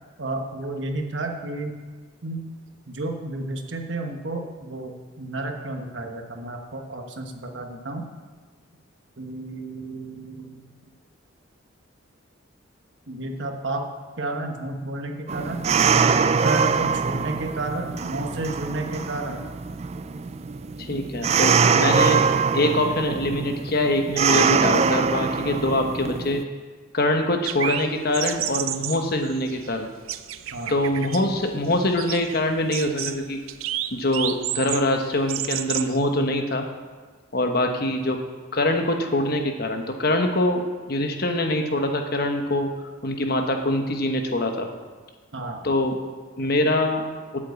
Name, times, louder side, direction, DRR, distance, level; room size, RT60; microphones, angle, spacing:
voice 1, 0.2-1.8 2.2-2.5 2.9-4.9 5.2-8.1 9.2-10.7 13.1-13.9 14.2-15.6 16.4-19.4 30.5-30.7 45.3-45.7, right 2 dB, 65° right, 4 dB, 1.2 m, -31 dB
sound 1, 15.3-26.4, right 5 dB, 30° right, 0.3 m, -23 dB
voice 2, 20.8-22.2 22.5-26.4 26.9-29.9 30.7-33.4 33.9-36.7 37.3-38.2 38.5-40.6 40.9-42.7 43.0-44.7 45.6-45.9 46.4-47.0, left 1 dB, 50° left, 4 dB, 1.1 m, -24 dB
sound 2, 27.5-36.0, right 12 dB, 90° right, 0.5 m, -32 dB
8.6 x 7.5 x 8.2 m, 1.4 s
head